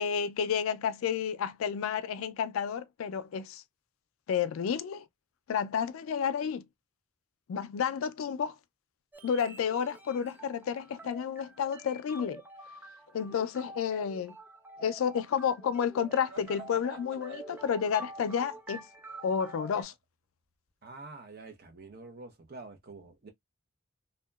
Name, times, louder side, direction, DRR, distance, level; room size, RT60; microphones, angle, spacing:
voice 1, 0.0-3.6 4.3-5.1 5.5-6.7 7.5-8.5 9.2-12.4 13.1-14.4 14.8-18.9 19.2-19.9, left 7 dB, 80° left, 0.3 m, -31 dB
sound 1, 9.1-19.8, right 2 dB, 10° right, 0.3 m, -48 dB
sound 2, 16.3-20.0, right 3 dB, 80° right, 1.3 m, -53 dB
voice 2, 20.8-23.3, right 3 dB, 45° right, 0.6 m, -47 dB
2.8 x 2.2 x 2.2 m
head